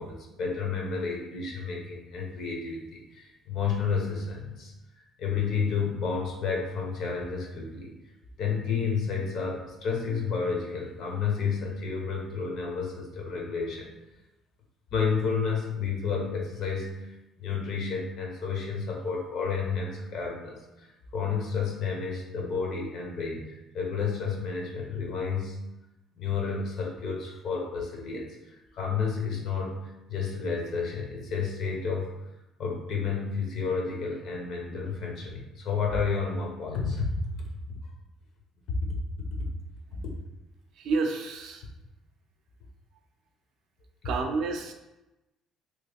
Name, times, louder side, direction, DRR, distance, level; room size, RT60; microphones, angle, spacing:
voice 1, 0.0-7.9 8.4-13.9 14.9-17.1 17.4-25.6 26.1-32.1 32.6-37.2 39.9-40.0, left 5 dB, 60° left, 0 dB, 0.8 m, -31 dB
voice 2, 40.7-41.7 44.0-44.7, right 4 dB, 70° right, 4 dB, 0.4 m, -29 dB
3.0 x 2.3 x 3.4 m, 0.99 s
cardioid pair, 125°, 0 cm